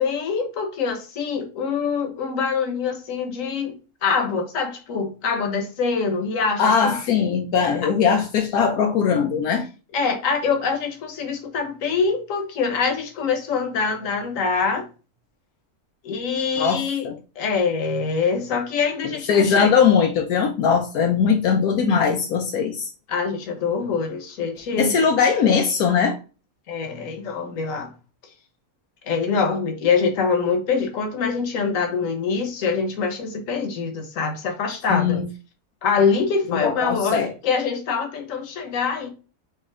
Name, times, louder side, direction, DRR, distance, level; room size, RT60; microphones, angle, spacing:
voice 1, 0.0-7.0 9.9-14.9 16.0-17.1 17.4-19.7 23.1-24.9 26.7-27.9 29.0-35.2 35.8-39.1, left 5 dB, 65° left, 1.4 m, -24 dB
voice 2, 6.6-9.7 16.6-17.1 19.3-22.9 24.8-26.2 34.9-35.2 36.5-37.3, left 6 dB, 85° left, 1.2 m, -20 dB
4.3 x 3.1 x 3.6 m
omnidirectional pair, 1.5 m